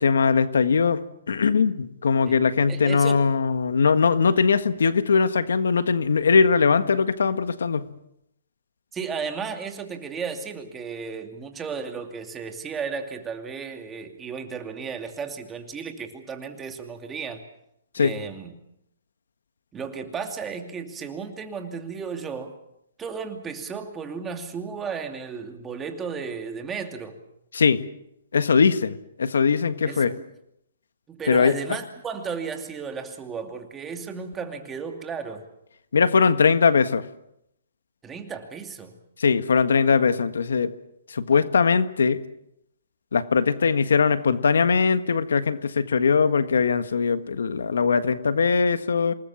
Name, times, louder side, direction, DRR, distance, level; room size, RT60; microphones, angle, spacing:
voice 1, 0.0-7.9 17.9-18.1 27.5-27.8 28.3-30.1 31.3-31.6 35.9-37.0 39.2-40.7 41.1-42.2 43.1-49.1, left 5 dB, 85° left, 11 dB, 1.6 m, -21 dB
voice 2, 2.7-3.2 8.9-17.4 18.0-18.5 19.7-22.5 23.0-27.2 29.9-30.2 31.1-35.4 38.0-39.0, right 5 dB, 15° right, 5 dB, 2.6 m, -34 dB
27.0 x 20.0 x 7.3 m, 0.79 s
hypercardioid pair, 150°, 0 cm